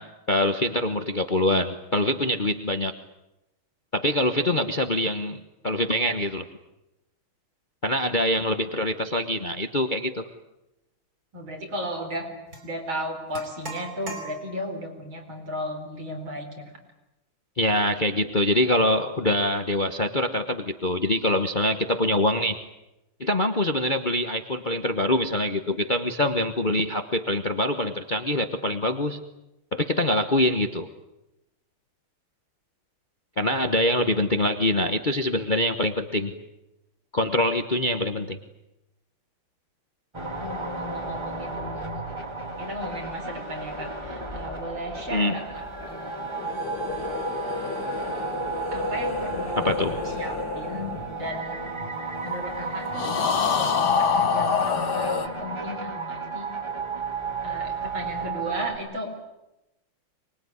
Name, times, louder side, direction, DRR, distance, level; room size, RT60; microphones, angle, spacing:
voice 1, 0.0-2.9 3.9-6.4 7.8-10.3 17.6-22.6 23.2-29.2 29.7-30.9 33.4-36.3 37.1-38.4 45.1-45.3 49.6-50.0, left 1 dB, 30° left, 7 dB, 1.0 m, -24 dB
voice 2, 11.3-12.3 12.6-16.7 40.4-42.1 42.6-46.3 48.7-49.9 50.2-51.6 52.2-56.5 57.4-59.2, equal, 65° right, 4 dB, 5.1 m, -35 dB
sound 1, 12.5-12.7 13.3-14.8, right 2 dB, 40° right, 4.9 m, -39 dB
sound 2, 40.1-58.8, right 3 dB, 15° right, 2.0 m, -33 dB
sound 3, 46.3-51.9 52.9-55.3, left 6 dB, 55° left, 1.7 m, -28 dB
24.5 x 21.5 x 9.7 m, 0.93 s
omnidirectional pair, 2.4 m